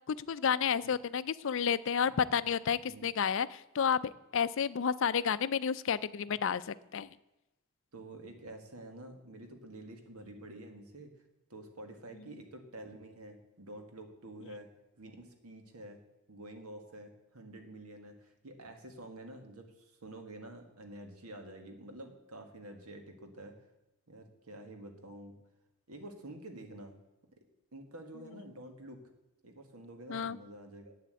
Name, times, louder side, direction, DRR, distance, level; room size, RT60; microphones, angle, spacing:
voice 1, 0.1-7.1 30.1-30.4, left 7 dB, 60° left, 16 dB, 0.4 m, -31 dB
voice 2, 2.0-2.4 2.8-3.1 7.9-11.1 11.5-14.7 15.0-16.0 16.3-23.6 24.1-25.4 25.9-27.0 27.7-29.0 29.4-30.9, right 1 dB, 85° right, 5 dB, 1.8 m, -49 dB
8.5 x 7.6 x 8.2 m, 0.98 s
head